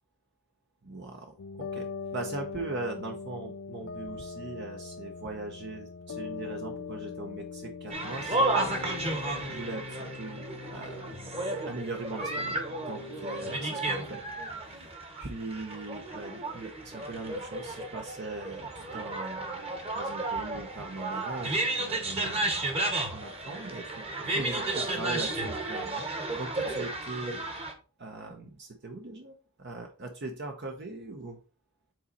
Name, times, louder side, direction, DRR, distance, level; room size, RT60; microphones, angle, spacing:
voice 1, 0.8-10.4 10.7-11.1 11.7-12.6 12.9-14.2 14.6-14.9 15.2-19.6 19.9-22.5 23.1-27.4 28.0-31.4, right 2 dB, 50° right, 4 dB, 0.9 m, -40 dB
sound 1, 1.4-14.2, left 4 dB, 65° left, 0.5 m, -41 dB
sound 2, 7.9-27.7, right 2 dB, 30° right, 1.2 m, -33 dB
7.8 x 4.1 x 4.1 m, 0.34 s
head